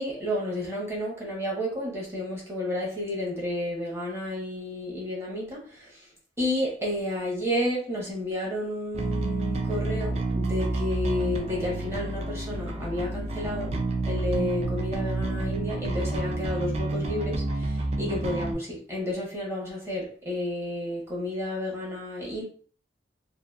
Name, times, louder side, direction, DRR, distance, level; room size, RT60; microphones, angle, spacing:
voice 1, 0.0-6.1 6.4-22.4, left 1 dB, 15° right, 0.9 m, -31 dB
Bass guitar, 8.9-18.5, right 2 dB, 35° right, 0.3 m, -29 dB
2.8 x 2.2 x 2.3 m
head